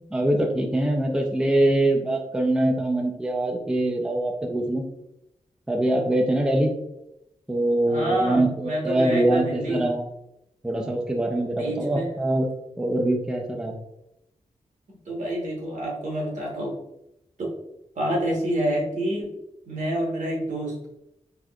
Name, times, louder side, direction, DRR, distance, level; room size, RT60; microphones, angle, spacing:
voice 1, 0.1-4.8 5.7-6.7 7.5-10.0 10.6-12.5 12.8-13.8, right 1 dB, 5° right, 2 dB, 0.4 m, -23 dB
voice 2, 7.9-9.9 11.5-12.1 15.1-16.8 17.4-17.5 17.9-19.3 19.7-20.8, right 1 dB, 75° right, -3 dB, 1.1 m, -27 dB
3.5 x 2.9 x 2.3 m, 0.84 s
wide cardioid pair, 125°, 13 cm